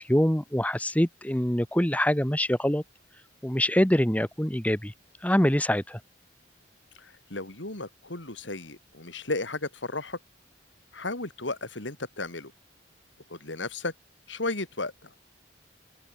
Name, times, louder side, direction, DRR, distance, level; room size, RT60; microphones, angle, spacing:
voice 1, 0.0-2.8 3.4-4.9 5.2-6.0, equal, 10° left, 1.5 m, -24 dB
voice 2, 7.0-10.2 10.9-12.5 13.3-13.9 14.3-15.1, left 2 dB, 90° left, 4.0 m, -34 dB
open air
head